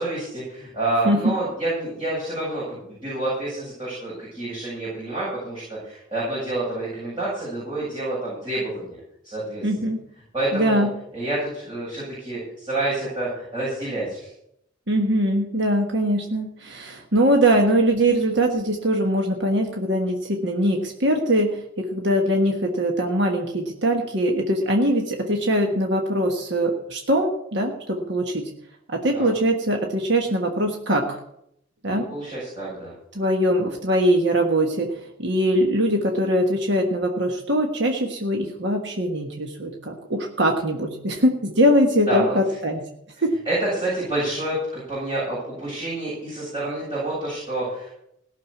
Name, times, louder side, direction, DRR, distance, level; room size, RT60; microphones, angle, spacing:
voice 1, 0.0-9.0 9.2-9.7 10.3-10.8 11.1-14.3 29.0-29.3 31.8-32.9 42.1-42.3 43.4-47.9, right 2 dB, 25° right, -9 dB, 7.9 m, -28 dB
voice 2, 9.6-10.0 10.5-10.9 14.9-28.5 28.9-31.2 31.8-32.1 33.1-34.9 35.2-42.8 43.2-43.3, equal, 60° right, 2 dB, 1.4 m, -22 dB
17.0 x 6.7 x 8.4 m, 0.77 s
head